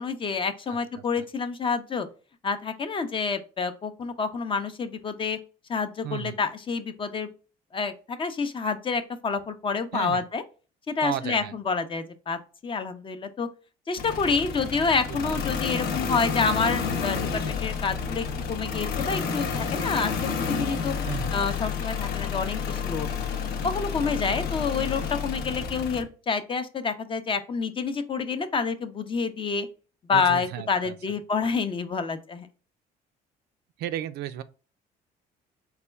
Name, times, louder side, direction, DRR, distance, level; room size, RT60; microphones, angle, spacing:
voice 1, 0.0-2.1 2.4-5.4 5.7-7.3 7.7-10.4 10.9-13.5 13.9-20.9 21.3-23.1 23.6-29.7 30.1-32.5, left 5 dB, 30° left, 0.5 m, -28 dB
voice 2, 0.7-1.2 6.0-6.4 9.9-10.2 11.0-11.5 14.9-15.4 21.0-21.4 30.1-31.2 33.8-34.4, right 11 dB, 75° right, 0.4 m, -35 dB
sound 1, 14.0-26.0, left 6 dB, 70° left, 0.6 m, -30 dB
sound 2, 15.0-23.7, left 1 dB, 10° left, 0.9 m, -51 dB
4.1 x 2.3 x 3.3 m
cardioid pair, 110°, 17 cm